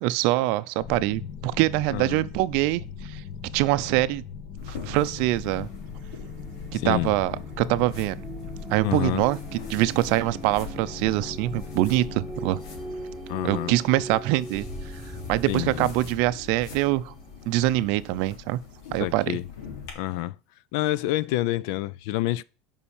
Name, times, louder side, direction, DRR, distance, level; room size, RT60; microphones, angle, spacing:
voice 1, 0.0-3.2 3.5-4.2 4.7-5.7 6.7-8.2 8.7-9.4 9.7-12.6 13.4-14.7 15.3-17.1 17.5-18.6 18.9-19.4, right 17 dB, 50° right, 0.5 m, -24 dB
sound 1, 0.8-14.1, left 6 dB, 40° left, 1.1 m, -40 dB
voice 2, 1.9-2.2 6.7-7.1 8.8-9.2 13.3-13.7 15.5-15.9 19.0-19.5 20.0-20.4 20.7-22.4, left 16 dB, 55° left, 0.4 m, -28 dB
sound 2, 4.6-19.9, left 6 dB, 90° left, 3.1 m, -44 dB
sound 3, 5.3-18.8, right 1 dB, ahead, 1.4 m, -41 dB
7.0 x 5.5 x 7.1 m
cardioid pair, 180°, 3 cm